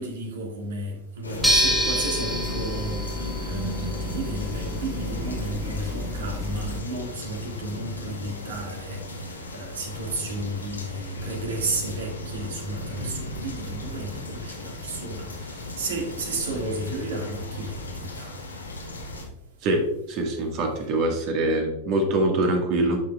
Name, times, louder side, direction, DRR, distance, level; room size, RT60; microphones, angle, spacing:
voice 1, 0.0-18.5, right 2 dB, 60° right, 1.9 m, -33 dB
sound 1, 1.2-19.3, left 2 dB, 80° left, 1.4 m, -37 dB
sound 2, 1.4-6.8, equal, 5° right, 2.0 m, -27 dB
voice 2, 19.6-23.0, right 1 dB, 40° right, 1.7 m, -24 dB
11.0 x 5.9 x 2.4 m
figure-of-eight pair, 90°, 0 cm